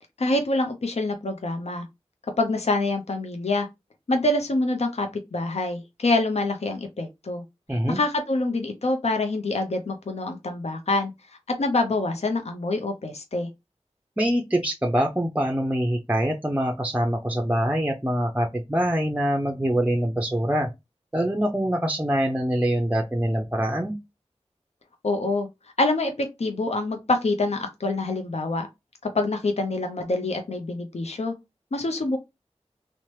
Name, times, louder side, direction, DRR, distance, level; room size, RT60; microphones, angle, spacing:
voice 1, 0.2-1.8 2.4-3.7 4.1-7.4 7.9-11.1 11.6-13.5 25.0-25.5 25.8-28.7 29.1-31.3 31.7-32.2, left 2 dB, 65° left, 0.5 m, -26 dB
voice 2, 7.7-8.0 14.2-20.7 21.1-24.0, right 1 dB, 10° right, 0.4 m, -24 dB
2.8 x 2.1 x 3.1 m
wide cardioid pair, 55°, 12 cm